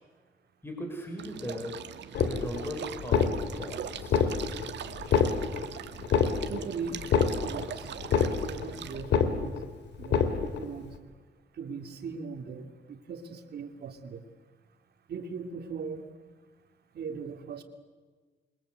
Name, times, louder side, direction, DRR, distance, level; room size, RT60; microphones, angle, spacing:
voice 1, 0.6-1.9 2.3-4.3, equal, 15° left, 2 dB, 6.1 m, -38 dB
sound 1, 1.2-9.0, right 9 dB, 85° right, 1.7 m, -42 dB
sound 2, 2.1-2.7 3.0-3.7 4.0-4.7 5.0-5.7 6.0-6.7 7.0-7.7 8.0-8.7 9.0-9.7 10.0-10.7, left 6 dB, 85° left, 2.7 m, -26 dB
voice 2, 6.5-7.0 7.4-7.9 8.4-9.6 10.0-10.9 11.5-14.3 15.1-16.1 16.9-17.6, right 5 dB, 65° right, 6 dB, 3.0 m, -39 dB
28.0 x 24.0 x 8.2 m, 1.4 s
cardioid pair, 120°, 18 cm